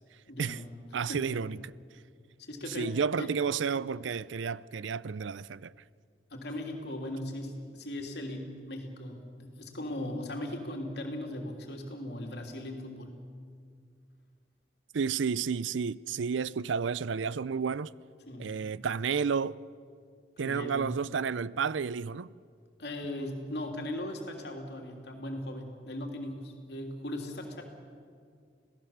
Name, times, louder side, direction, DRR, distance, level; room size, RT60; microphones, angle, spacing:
voice 1, 0.3-0.7 1.1-1.3 2.4-3.3 6.3-13.1 18.3-18.6 20.4-20.9 22.8-27.6, left 1 dB, 60° left, 3.2 m, -38 dB
voice 2, 0.9-1.7 2.7-5.7 14.9-17.9 18.4-19.6 20.4-22.3, right 6 dB, 85° right, 0.5 m, -31 dB
27.0 x 17.5 x 7.2 m
head